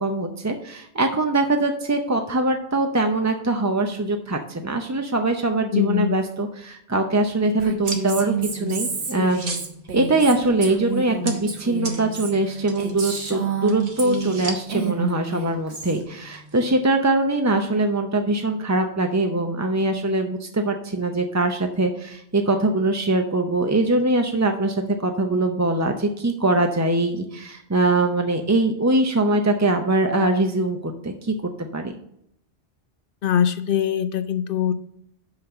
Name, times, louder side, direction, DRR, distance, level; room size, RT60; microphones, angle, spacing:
voice 1, 0.0-9.4 9.9-31.3 31.7-31.9, right 2 dB, 25° right, 5 dB, 0.4 m, -22 dB
voice 2, 5.7-6.1 33.2-34.7, left 9 dB, 60° left, 11 dB, 0.7 m, -22 dB
Female speech woman speaking, 7.6-14.4 14.7-16.0, right 5 dB, 70° right, 1.5 m, -29 dB
sound 1, 7.8-16.8, right 3 dB, 50° right, 1.4 m, -39 dB
5.7 x 5.7 x 6.5 m, 0.75 s
omnidirectional pair, 1.1 m